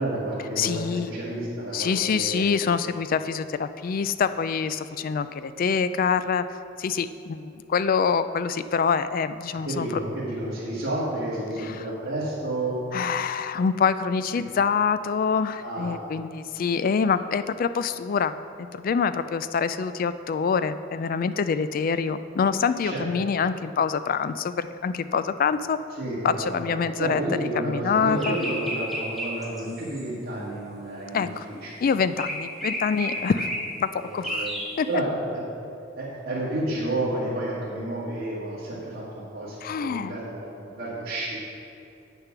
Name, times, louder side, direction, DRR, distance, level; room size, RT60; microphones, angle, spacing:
voice 1, 0.0-2.6 9.7-12.8 15.6-16.0 22.8-23.0 25.9-31.8 33.1-33.3 34.0-35.4 36.0-41.4, right 1 dB, 50° right, -10 dB, 1.8 m, -31 dB
voice 2, 0.6-1.1 1.7-9.9 11.8-11.9 12.9-25.8 26.2-27.2 27.6-28.4 29.7-29.8 31.1-31.5 31.8-33.5 33.8-34.5 34.8-34.9 39.6-40.1, left 6 dB, 45° left, 13 dB, 0.3 m, -25 dB
sound 1, 28.2-30.1 32.2-33.6 34.2-34.7, equal, ahead, 1.6 m, -31 dB
8.2 x 6.6 x 6.0 m, 2.7 s
head